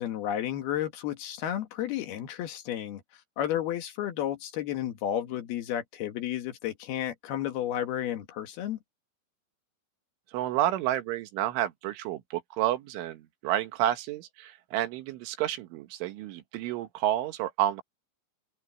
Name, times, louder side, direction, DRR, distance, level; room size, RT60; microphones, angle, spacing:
voice 1, 0.0-3.0 3.4-8.8, left 11 dB, 65° left, 3.2 m, -32 dB
voice 2, 10.3-17.8, right 13 dB, 90° right, 3.9 m, -30 dB
omnidirectional pair, 5.4 m